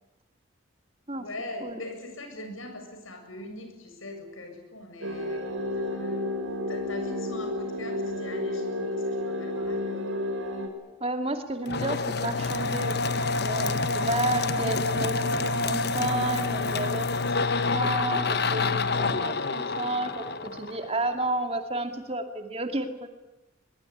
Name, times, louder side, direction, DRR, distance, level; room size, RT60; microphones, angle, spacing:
voice 1, 1.1-6.2 6.7-10.2, left 1 dB, 85° left, 6 dB, 7.7 m, -42 dB
sound 1, 5.0-10.7, left 1 dB, 85° right, 5.7 m, -31 dB
voice 2, 11.0-17.3 17.7-23.1, right 2 dB, 30° right, 6 dB, 2.4 m, -32 dB
sound 2, 11.7-21.2, left 3 dB, 55° left, 1.3 m, -27 dB
23.0 x 23.0 x 10.0 m, 1.0 s
head